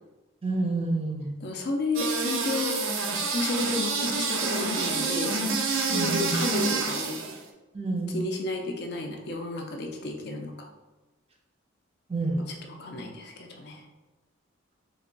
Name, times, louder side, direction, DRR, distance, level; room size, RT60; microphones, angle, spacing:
voice 1, 0.4-1.4 5.9-6.3 7.7-8.2 12.1-12.5, right 2 dB, 30° right, 0 dB, 0.5 m, -29 dB
voice 2, 1.4-5.4 5.7-7.2 8.1-10.7 12.4-13.9, left 2 dB, 55° left, 2 dB, 0.5 m, -32 dB
sound 1, 1.9-7.4, right 4 dB, 85° right, 0.5 m, -28 dB
3.3 x 2.2 x 3.8 m, 1.1 s
head